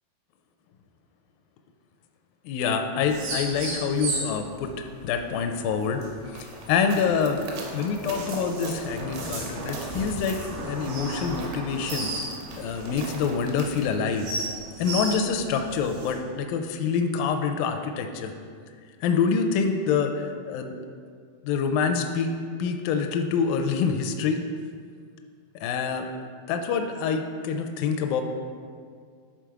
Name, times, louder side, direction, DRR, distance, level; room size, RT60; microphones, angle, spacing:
voice 1, 2.5-6.0 6.3-7.4 7.7-10.4 10.6-12.1 12.6-14.3 14.8-18.3 19.0-20.7 21.4-22.3 22.6-24.4 25.6-26.1 26.5-28.2, left 6 dB, 80° left, 5 dB, 2.1 m, -26 dB
sound 1, 3.0-16.1, right 2 dB, 90° right, 3.6 m, -36 dB
sound 2, 6.4-14.0, right 3 dB, 70° right, 2.3 m, -40 dB
9.1 x 4.0 x 4.7 m, 2.1 s
omnidirectional pair, 4.4 m